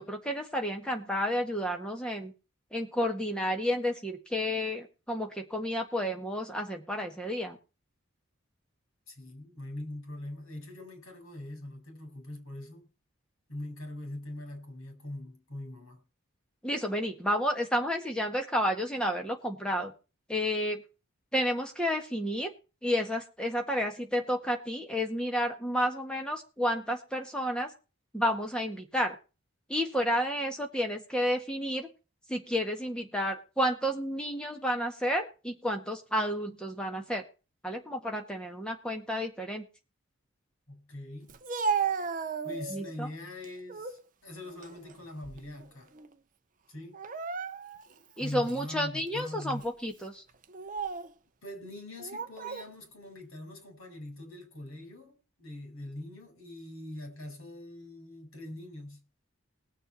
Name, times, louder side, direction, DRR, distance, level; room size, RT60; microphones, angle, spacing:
voice 1, 0.0-2.3 2.7-7.6 16.6-19.9 20.3-20.8 21.3-22.5 22.8-27.7 28.1-29.1 29.7-31.9 32.3-37.2 37.6-39.6 42.7-43.1 48.2-50.2, equal, 5° left, 1.6 m, -31 dB
voice 2, 9.1-12.9 13.5-16.0 40.7-41.4 42.4-45.9 46.7-47.0 48.2-49.7 51.4-59.0, left 1 dB, 85° left, 5.0 m, -42 dB
Speech, 41.3-42.9 43.4-44.0 44.5-45.7 45.9-46.1 46.9-47.9 48.5-48.6 49.4-49.7 50.4-51.1 52.0-52.7, right 6 dB, 40° right, 0.7 m, -34 dB
20.5 x 6.9 x 4.2 m
head